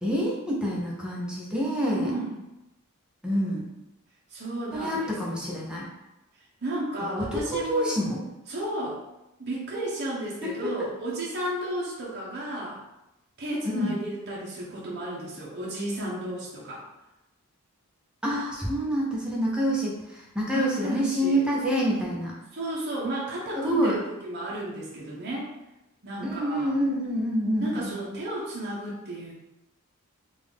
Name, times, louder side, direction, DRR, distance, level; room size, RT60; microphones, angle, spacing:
voice 1, 0.0-2.1 3.2-3.7 4.7-5.9 7.2-8.2 10.4-10.7 13.6-14.0 18.2-22.3 23.5-24.0 26.2-27.9, equal, 5° right, -4 dB, 0.7 m, -27 dB
voice 2, 2.0-2.3 4.3-5.4 6.6-7.9 8.5-9.0 9.4-12.8 13.4-16.8 20.5-21.4 22.5-25.5 26.0-26.7 27.6-29.3, right 1 dB, 50° right, -6 dB, 0.9 m, -33 dB
3.8 x 2.4 x 3.5 m, 0.94 s
head